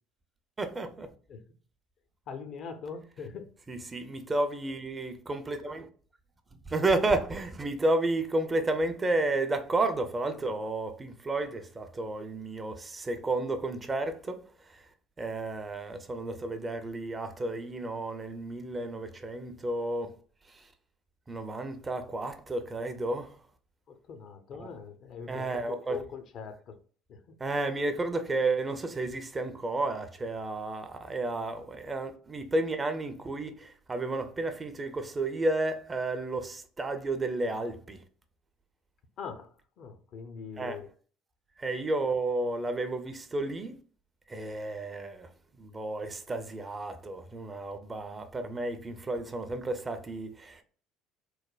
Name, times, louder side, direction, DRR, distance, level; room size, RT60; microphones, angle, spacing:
voice 1, 0.6-1.1 3.7-5.9 6.7-14.8 15.2-20.1 20.5-20.7 21.3-23.4 24.6-24.7 25.3-26.0 27.4-38.0 40.6-40.8 41.6-43.7 44.3-45.3 45.5-50.6, right 2 dB, 25° right, 0.5 m, -32 dB
voice 2, 2.3-3.5 23.9-26.8 27.1-27.4 39.2-40.9 41.7-41.8, left 6 dB, 50° left, 0.5 m, -42 dB
3.1 x 2.1 x 2.3 m
hypercardioid pair, 60°, 0 cm